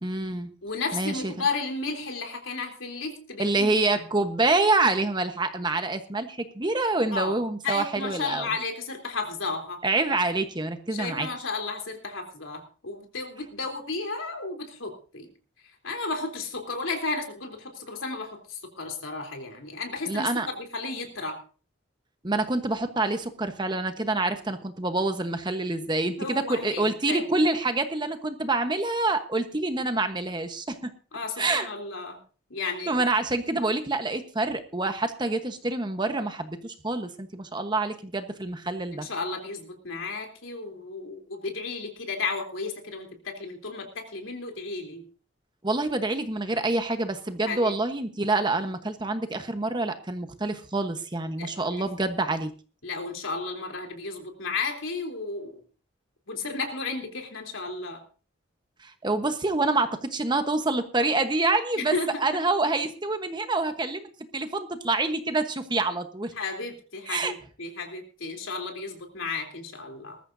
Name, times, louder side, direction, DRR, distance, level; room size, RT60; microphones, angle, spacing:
voice 1, 0.0-0.5 0.9-1.3 3.4-8.5 9.8-11.3 20.1-20.5 22.2-30.9 31.4-31.7 32.9-39.1 45.6-52.5 58.8-61.9 62.2-66.3 67.1-67.3, right 2 dB, 25° right, 8 dB, 1.1 m, -27 dB
voice 2, 0.6-4.0 7.1-7.4 7.6-9.8 10.9-15.3 15.6-21.4 26.2-27.3 31.1-32.2 32.5-33.0 38.9-45.0 47.5-47.7 51.4-51.9 52.8-55.6 56.3-58.0 61.8-62.4 66.4-70.2, left 3 dB, 85° left, 3 dB, 3.4 m, -33 dB
20.0 x 14.0 x 2.7 m, 0.38 s
head